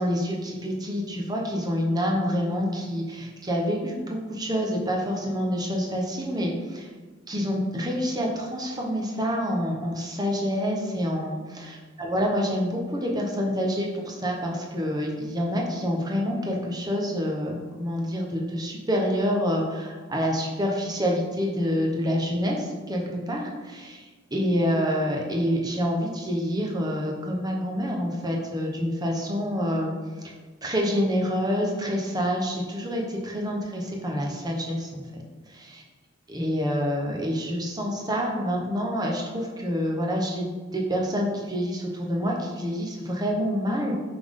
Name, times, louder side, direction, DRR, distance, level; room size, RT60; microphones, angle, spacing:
voice 1, 0.0-6.9 7.3-24.1 24.3-29.9 30.2-30.3 30.6-35.0 35.5-35.8 36.3-43.9, equal, 20° right, -1 dB, 1.0 m, -27 dB
5.8 x 5.4 x 3.7 m, 1.3 s
head